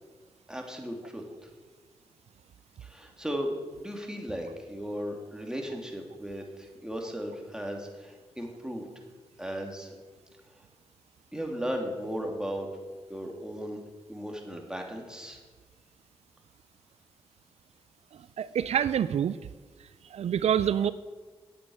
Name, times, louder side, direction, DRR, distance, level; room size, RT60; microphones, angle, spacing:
voice 1, 0.5-1.2 2.8-8.9 9.4-9.9 11.3-12.7 13.1-13.8 14.1-15.4, equal, 5° right, 2 dB, 2.9 m, -36 dB
voice 2, 18.4-19.4 20.1-20.9, right 9 dB, 75° right, 15 dB, 0.4 m, -26 dB
9.4 x 8.6 x 8.9 m, 1.4 s
cardioid pair, 50°, 11 cm